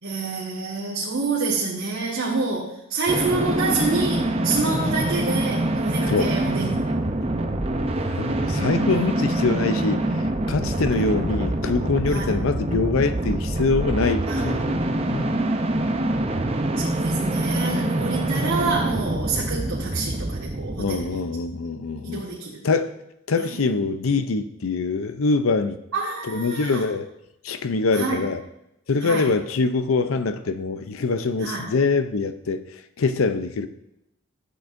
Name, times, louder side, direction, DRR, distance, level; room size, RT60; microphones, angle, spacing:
voice 1, 0.0-6.9 8.5-9.1 9.4-9.8 10.7-10.8 12.1-12.3 14.2-14.6 16.7-21.2 22.0-22.6 23.4-23.9 25.9-26.8 27.9-28.2 29.0-29.3 31.4-31.7, right 3 dB, 75° right, 1.7 m, -28 dB
sound 1, 3.1-21.6, right 1 dB, 30° right, 0.6 m, -25 dB
voice 2, 7.8-14.7 15.1-15.4 20.8-22.3 22.6-22.9 23.3-25.8 26.3-27.1 27.4-28.4 28.9-32.6 33.0-33.7, left 4 dB, 75° left, 0.5 m, -24 dB
12.5 x 7.8 x 2.6 m
head